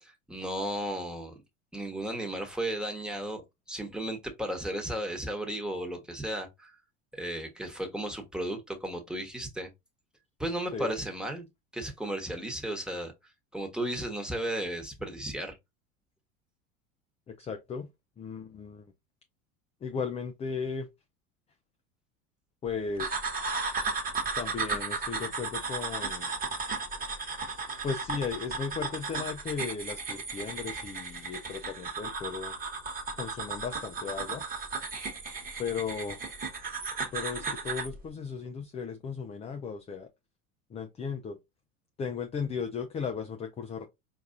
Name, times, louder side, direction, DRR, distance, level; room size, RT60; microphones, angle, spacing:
voice 1, 0.0-1.3 1.7-3.4 3.7-6.8 7.1-9.7 10.4-11.5 11.7-13.1 13.5-15.6, right 1 dB, ahead, 1.1 m, -34 dB
voice 2, 17.3-17.9 18.2-18.9 19.8-20.9 22.6-23.1 24.4-26.3 27.8-32.5 33.2-34.4 35.6-36.2 37.1-40.1 40.7-41.4 42.0-43.9, left 5 dB, 15° left, 0.4 m, -36 dB
sound 1, 23.0-37.9, right 4 dB, 20° right, 1.3 m, -35 dB
4.6 x 2.6 x 2.5 m
hypercardioid pair, 80°, 40 cm